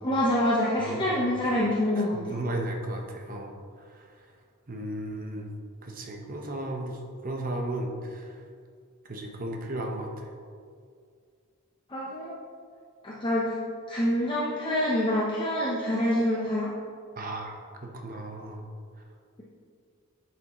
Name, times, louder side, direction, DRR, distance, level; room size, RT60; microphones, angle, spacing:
voice 1, 0.0-2.2 11.9-12.4 13.0-13.5 13.9-16.7, left 1 dB, 25° left, -5 dB, 0.8 m, -26 dB
voice 2, 0.8-1.2 2.0-3.5 4.7-5.5 5.8-7.0 7.2-8.3 9.1-10.2 17.2-17.5 17.8-18.6, right 1 dB, 40° right, 2 dB, 0.9 m, -34 dB
9.8 x 6.0 x 3.0 m, 2.2 s
head